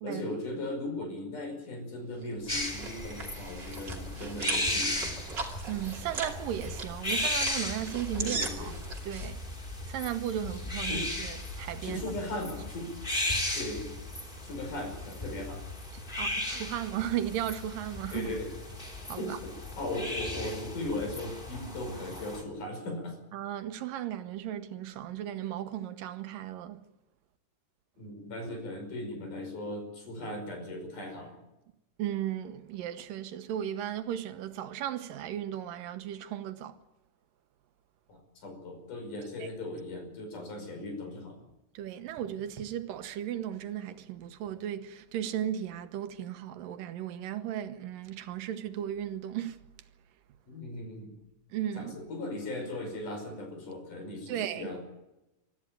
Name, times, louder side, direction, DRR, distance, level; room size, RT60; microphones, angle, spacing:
voice 1, 0.0-5.2 8.2-8.8 10.5-11.1 11.8-12.9 13.5-14.0 14.4-15.6 18.1-18.5 19.2-23.2 28.0-31.3 38.1-41.4 50.5-51.1 51.8-54.8, left 2 dB, 70° left, 7.0 m, -38 dB
sound 1, 2.2-9.3, right 4 dB, 35° right, 3.1 m, -39 dB
sound 2, 2.5-22.4, left 1 dB, 15° left, 2.9 m, -36 dB
voice 2, 5.7-8.7 9.0-9.4 9.9-12.0 16.2-18.3 19.1-19.4 23.3-26.8 32.0-36.8 41.7-49.6 51.5-51.9 54.3-54.7, right 11 dB, 90° right, 2.8 m, -35 dB
24.5 x 14.5 x 9.3 m
omnidirectional pair, 3.8 m